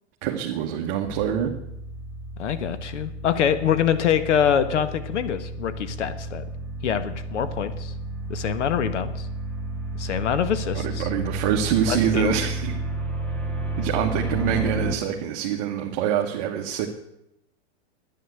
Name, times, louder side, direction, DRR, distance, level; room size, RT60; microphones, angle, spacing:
voice 1, 0.2-1.5 10.7-12.7 13.8-16.9, right 9 dB, 40° right, 0 dB, 1.4 m, -25 dB
sound 1, 1.0-14.9, right 2 dB, 5° left, 1.0 m, -32 dB
voice 2, 2.4-6.4 6.8-7.9 8.3-9.3 10.0-11.1 11.8-12.3, left 8 dB, 85° left, 12 dB, 1.6 m, -25 dB
10.5 x 10.5 x 8.0 m, 0.82 s
hypercardioid pair, 150°, 35 cm